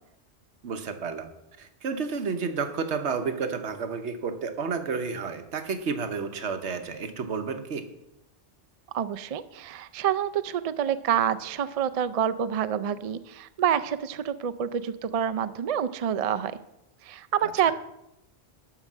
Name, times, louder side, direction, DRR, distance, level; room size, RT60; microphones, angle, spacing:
voice 1, 0.6-1.3 1.6-7.8 17.4-17.7, right 5 dB, 75° right, 8 dB, 1.2 m, -31 dB
voice 2, 8.9-16.5 17.0-17.7, right 9 dB, 55° right, 13 dB, 0.4 m, -27 dB
12.0 x 5.0 x 7.3 m, 0.87 s
omnidirectional pair, 1.2 m